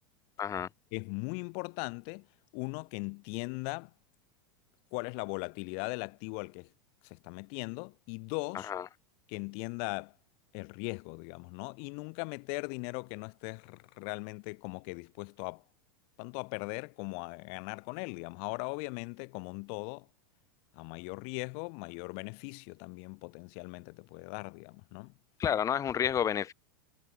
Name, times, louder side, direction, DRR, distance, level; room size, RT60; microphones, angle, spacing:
voice 1, 0.4-0.7 8.7-8.8 25.4-26.5, left 9 dB, 25° left, 1.1 m, -30 dB
voice 2, 0.9-2.3 2.5-3.9 4.9-6.7 7.0-8.7 9.3-10.1 10.5-15.6 16.2-20.1 20.7-25.1, left 40 dB or more, 55° left, 1.0 m, -39 dB
hypercardioid pair, 115°, 12 cm